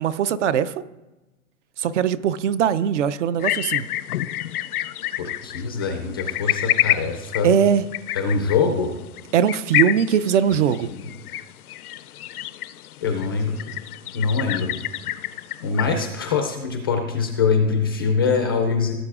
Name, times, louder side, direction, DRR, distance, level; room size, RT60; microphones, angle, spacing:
voice 1, 0.0-0.7 1.8-3.9 7.4-7.8 9.3-10.9, right 8 dB, 55° right, 15 dB, 0.5 m, -20 dB
sound 1, 3.4-16.1, left 14 dB, 85° left, 0.5 m, -28 dB
voice 2, 5.2-7.5 8.1-8.9 10.9-11.0 13.0-13.8 14.1-14.7 15.6-18.9, left 5 dB, 20° left, 4 dB, 0.3 m, -23 dB
17.0 x 7.8 x 2.4 m, 1.1 s
hypercardioid pair, 140°, 43 cm